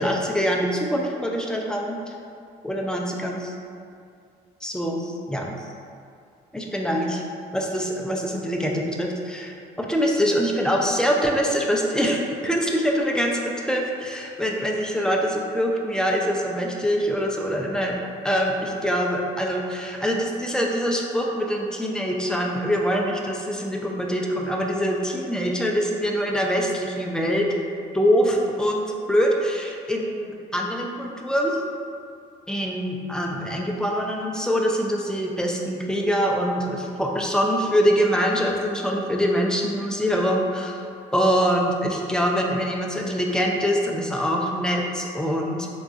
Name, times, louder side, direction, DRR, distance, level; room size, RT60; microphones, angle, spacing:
voice 1, 0.0-2.0 2.6-3.5 4.6-5.6 6.5-7.2 7.5-17.9 18.2-27.5 27.9-31.6 32.5-40.9 41.1-45.7, equal, 5° left, 0 dB, 0.3 m, -24 dB
3.8 x 2.3 x 2.4 m, 2.3 s
cardioid pair, 110°, 17 cm